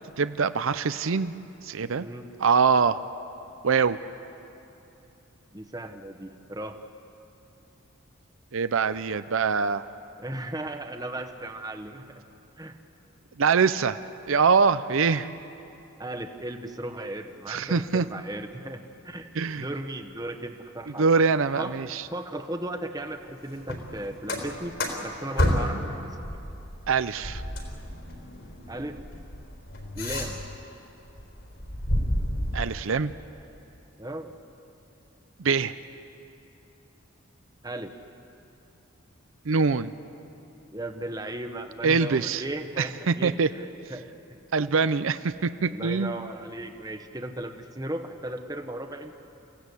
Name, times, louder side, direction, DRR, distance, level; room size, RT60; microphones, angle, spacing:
voice 1, 0.2-1.3 1.6-2.1 2.4-3.0 3.6-4.0 8.5-9.9 13.4-14.0 14.3-15.3 17.5-18.0 19.4-19.6 21.0-22.0 26.9-27.4 32.5-33.1 35.4-35.8 39.5-39.9 41.8-42.4 42.8-43.5 44.5-46.1, right 5 dB, 75° right, 13 dB, 0.6 m, -23 dB
voice 2, 5.5-6.8 10.2-12.2 12.6-12.8 16.0-21.1 21.6-21.7 22.1-24.7 25.0-26.2 28.7-29.0 29.9-30.4 34.0-34.3 37.6-38.0 40.7-44.1 45.7-49.1, right 1 dB, 20° right, 5 dB, 1.0 m, -36 dB
sound 1, 23.6-25.9 26.2-30.7 31.1-32.6, left 1 dB, 65° left, 4.0 m, -30 dB
29.5 x 16.0 x 8.3 m, 2.9 s
head